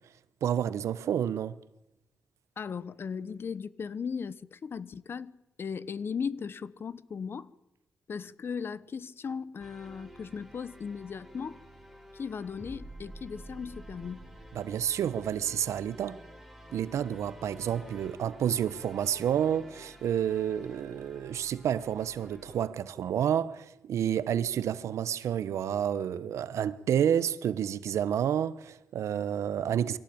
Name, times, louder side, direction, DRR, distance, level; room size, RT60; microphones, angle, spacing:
voice 1, 0.4-1.6 14.5-16.2 16.7-30.0, right 9 dB, 85° right, 1.1 m, -29 dB
voice 2, 2.6-5.3 5.6-7.5 8.1-11.6 12.1-14.3, left 6 dB, 50° left, 1.1 m, -37 dB
sound 1, 9.6-22.7, right 1 dB, ahead, 5.2 m, -50 dB
24.0 x 17.5 x 8.8 m
cardioid pair, 90°, 5 cm